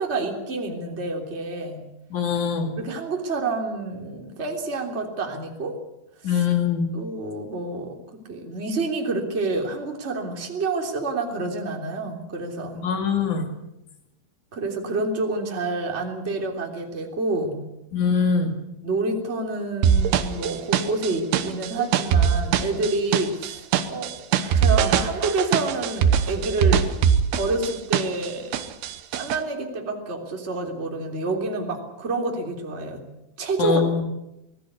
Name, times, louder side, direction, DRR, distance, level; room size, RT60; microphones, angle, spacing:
voice 1, 0.0-1.8 2.8-5.7 6.3-6.4 6.9-8.0 8.3-12.8 14.5-17.6 18.8-26.9 27.4-28.6 29.1-33.0 33.4-33.8, right 3 dB, 15° right, 2 dB, 3.0 m, -28 dB
voice 2, 2.1-2.7 6.2-6.9 12.8-13.5 17.9-18.5 33.6-34.0, left 6 dB, 50° left, 5 dB, 3.7 m, -22 dB
sound 1, 19.8-28.3 28.5-29.4, right 8 dB, 75° right, 3.0 m, -21 dB
24.5 x 19.0 x 8.3 m, 0.90 s
omnidirectional pair, 4.9 m